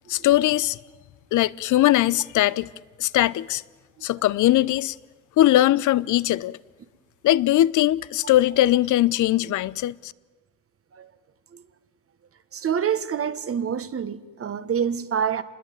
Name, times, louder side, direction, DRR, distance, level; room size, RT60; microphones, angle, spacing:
voice 1, 0.1-0.8 1.3-2.7 3.0-3.6 4.0-4.9 5.4-6.6 7.2-10.1, left 14 dB, 75° left, 0.7 m, -20 dB
voice 2, 12.5-15.4, right 8 dB, 50° right, 1.5 m, -26 dB
26.5 x 21.0 x 9.3 m
cardioid pair, 90°, 30 cm